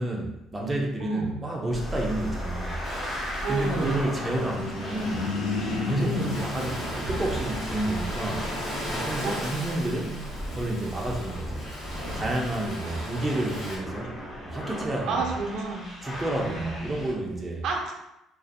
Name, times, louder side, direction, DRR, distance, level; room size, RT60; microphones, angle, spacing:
voice 1, 0.0-2.8 3.5-5.3 5.8-8.5 8.9-10.1 10.5-11.7 12.0-14.1 14.4-15.3 16.0-17.6, right 1 dB, 15° right, -1 dB, 0.5 m, -30 dB
voice 2, 1.0-1.5 3.4-4.0 6.0-6.4 9.2-10.1 12.8-13.1 15.1-15.9 16.4-16.9 17.6-17.9, right 3 dB, 70° right, 0 dB, 0.5 m, -31 dB
sound 1, 1.7-17.1, equal, 15° left, 1.3 m, -37 dB
Ocean, 2.8-13.8, equal, 45° left, 1.3 m, -37 dB
sound 2, 4.1-7.7, left 4 dB, 65° left, 0.7 m, -32 dB
2.5 x 2.4 x 2.4 m, 0.86 s
cardioid pair, 105°, 0 cm